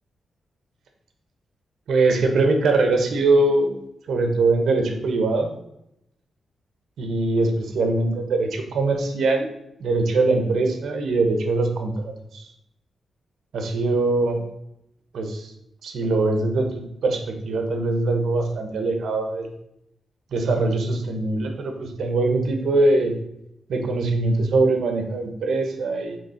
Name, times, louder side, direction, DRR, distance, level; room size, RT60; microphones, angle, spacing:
voice 1, 1.9-3.8 4.1-5.5 7.0-9.5 9.8-12.5 13.5-14.4 15.1-15.5 15.8-19.5 20.3-23.2 23.7-26.2, right 2 dB, 70° right, 5 dB, 1.1 m, -22 dB
6.6 x 4.5 x 4.4 m, 0.80 s
wide cardioid pair, 160°, 0 cm